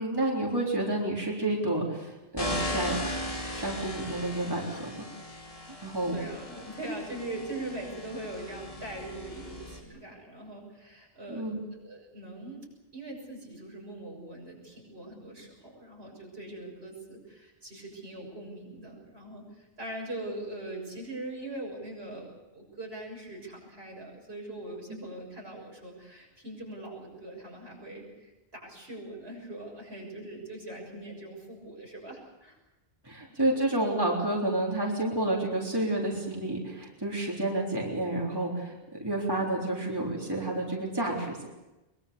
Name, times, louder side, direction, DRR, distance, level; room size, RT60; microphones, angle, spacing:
voice 1, 0.0-3.0 3.5-5.0 5.8-6.2 11.3-11.6 33.0-41.5, right 1 dB, 20° right, -2 dB, 3.7 m, -30 dB
sound 1, 2.4-9.8, left 1 dB, 35° left, 3.0 m, -38 dB
voice 2, 6.1-12.7 12.9-32.6 33.3-33.4, right 1 dB, 80° right, -1 dB, 7.1 m, -41 dB
23.0 x 22.5 x 6.9 m, 0.99 s
omnidirectional pair, 1.0 m